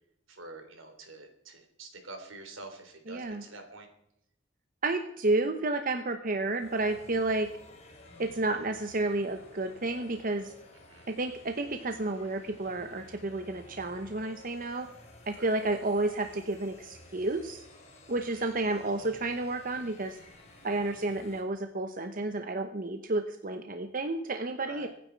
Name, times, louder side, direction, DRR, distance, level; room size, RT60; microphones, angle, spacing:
voice 1, 0.3-3.9 10.9-11.1 15.4-15.6 18.2-18.5 24.6-24.9, right 2 dB, 80° right, 5 dB, 3.5 m, -47 dB
voice 2, 3.1-3.4 4.8-7.5 8.2-10.5 11.1-14.9 15.3-17.6 18.1-20.2 20.6-24.9, right 2 dB, 45° right, 7 dB, 0.9 m, -31 dB
sound 1, 6.6-21.4, left 1 dB, 35° left, 3.3 m, -54 dB
24.0 x 9.8 x 4.6 m, 0.76 s
head